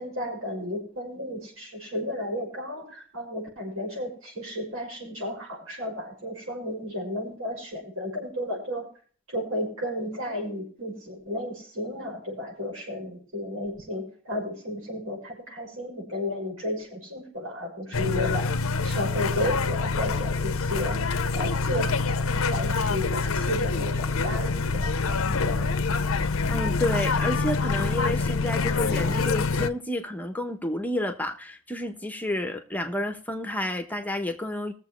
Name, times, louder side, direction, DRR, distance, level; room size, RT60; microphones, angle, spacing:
voice 1, 0.0-8.8 9.3-18.5 18.8-21.0 21.3-25.8, left 1 dB, 85° right, 6.3 m, -33 dB
sound 1, 17.9-29.7, left 4 dB, 80° left, 0.8 m, -26 dB
voice 2, 26.5-34.7, left 1 dB, 10° left, 1.1 m, -30 dB
21.5 x 7.3 x 3.2 m
head